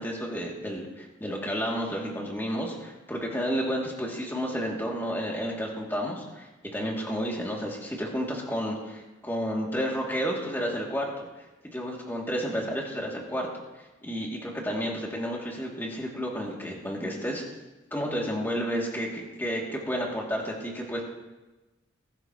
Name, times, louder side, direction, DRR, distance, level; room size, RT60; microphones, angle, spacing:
voice 1, 0.0-6.5 6.7-11.3 11.6-13.5 14.0-17.4 17.9-21.0, equal, 10° left, -2 dB, 2.4 m, -31 dB
22.0 x 11.5 x 3.0 m, 1.1 s
head